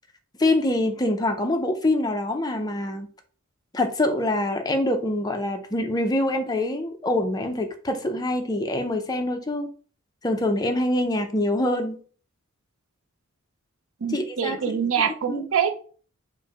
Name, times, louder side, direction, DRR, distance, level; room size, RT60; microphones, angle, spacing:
voice 1, 0.4-3.1 3.7-9.7 10.2-12.0 14.1-14.8 15.3-15.5, left 1 dB, 20° left, 6 dB, 0.5 m, -25 dB
voice 2, 14.0-15.8, right 7 dB, 70° right, 7 dB, 0.5 m, -25 dB
4.5 x 2.1 x 4.6 m, 0.42 s
head